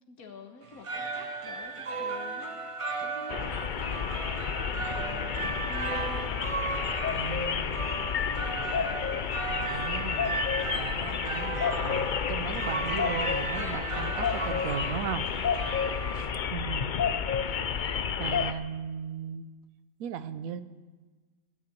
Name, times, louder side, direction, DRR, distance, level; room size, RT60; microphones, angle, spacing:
voice 1, 0.1-4.0 4.8-6.5 8.0-8.7 10.7-11.4, left 4 dB, 85° left, 4 dB, 1.9 m, -48 dB
sound 1, 0.6-16.5, right 3 dB, 35° right, 0.6 m, -36 dB
sound 2, 3.3-18.5, left 7 dB, 55° left, 0.5 m, -30 dB
voice 2, 7.1-7.9 9.7-10.4 10.7-15.3 16.1-16.9 17.5-19.5 20.0-20.6, right 8 dB, 75° right, 13 dB, 1.1 m, -37 dB
15.5 x 6.7 x 9.7 m, 1.3 s
omnidirectional pair, 1.5 m